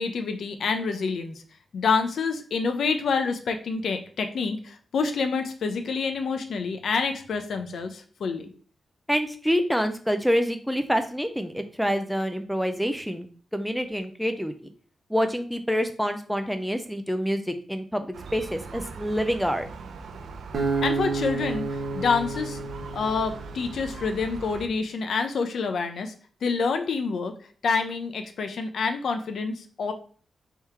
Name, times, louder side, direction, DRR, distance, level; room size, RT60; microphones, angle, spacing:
voice 1, 0.0-1.4 1.7-8.5 20.8-22.6 22.9-26.1 26.4-27.3 27.6-29.9, left 5 dB, 75° left, 7 dB, 0.5 m, -27 dB
voice 2, 9.1-13.3 13.5-14.5 15.1-19.7, equal, ahead, 8 dB, 0.4 m, -27 dB
Gull seagull, 18.1-24.7, right 4 dB, 85° right, 0.5 m, -40 dB
Acoustic guitar, 20.5-23.8, right 3 dB, 55° right, 0.9 m, -30 dB
3.5 x 2.8 x 4.6 m, 0.43 s
wide cardioid pair, 125°, 0 cm